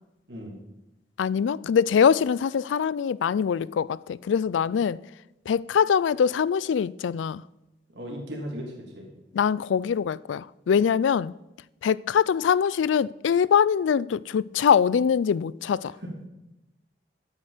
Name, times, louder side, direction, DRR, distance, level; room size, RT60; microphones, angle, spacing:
voice 1, 1.2-5.0 5.5-7.4 9.3-11.3 11.8-15.9, left 7 dB, 85° left, 0.3 m, -23 dB
voice 2, 7.9-9.1 15.8-16.3, equal, 70° right, 2.9 m, -37 dB
12.5 x 8.9 x 5.0 m
head